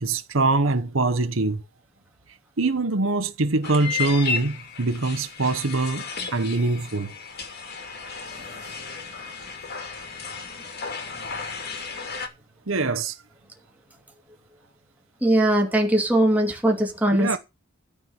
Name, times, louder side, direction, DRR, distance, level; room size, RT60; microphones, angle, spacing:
voice 1, 0.0-1.6 2.6-7.1 12.7-13.2 17.1-17.4, right 3 dB, 70° right, 1.1 m, -23 dB
sound 1, 3.6-12.3, left 5 dB, 55° left, 2.6 m, -34 dB
voice 2, 15.2-17.4, right 1 dB, 10° right, 2.6 m, -20 dB
13.5 x 4.6 x 8.1 m
head